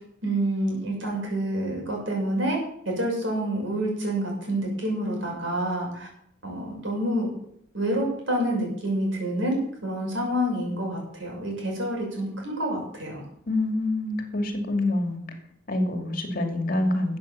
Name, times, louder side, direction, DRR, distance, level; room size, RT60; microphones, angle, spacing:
voice 1, 0.2-2.6 2.8-6.1 6.4-7.3 7.7-13.2, right 1 dB, 70° right, -1 dB, 6.0 m, -28 dB
voice 2, 13.5-15.2 15.7-17.2, left 2 dB, 45° left, 5 dB, 2.4 m, -26 dB
13.0 x 8.3 x 7.2 m, 0.71 s
head